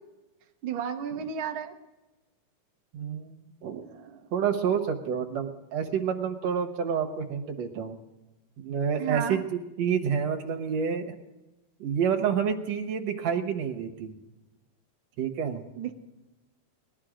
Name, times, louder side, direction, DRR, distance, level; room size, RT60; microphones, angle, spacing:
voice 1, 0.6-1.7 3.8-4.3 9.0-9.4 15.8-15.9, right 8 dB, 85° right, 4 dB, 1.1 m, -33 dB
voice 2, 2.9-3.8 4.3-8.0 8.6-9.4 9.8-11.2 11.8-14.1 15.2-15.6, right 7 dB, 60° right, 5 dB, 2.0 m, -28 dB
19.5 x 12.0 x 5.0 m, 1.1 s
omnidirectional pair, 3.9 m